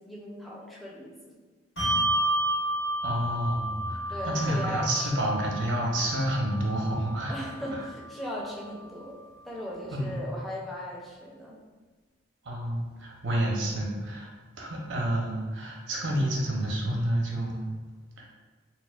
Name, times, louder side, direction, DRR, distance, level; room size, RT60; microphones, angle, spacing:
voice 1, 0.0-1.4 4.1-5.3 7.3-9.2 9.4-11.6, left 1 dB, ahead, -4 dB, 0.4 m, -38 dB
Bell, 1.8-8.6, right 1 dB, 85° left, 1.5 m, -31 dB
voice 2, 3.0-7.3 9.9-10.1 12.5-14.3 14.6-17.6 18.2-18.3, right 1 dB, 85° right, -1 dB, 0.6 m, -29 dB
4.2 x 2.0 x 2.3 m, 1.3 s
head